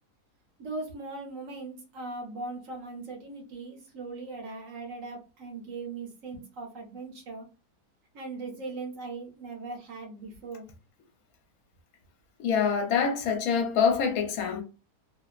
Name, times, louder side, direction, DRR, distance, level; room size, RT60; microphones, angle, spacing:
voice 1, 0.6-7.5 8.1-10.7, right 3 dB, 60° right, 1.1 m, -39 dB
voice 2, 12.4-14.6, left 6 dB, 70° left, 1.1 m, -25 dB
2.8 x 2.0 x 2.3 m
omnidirectional pair, 1.7 m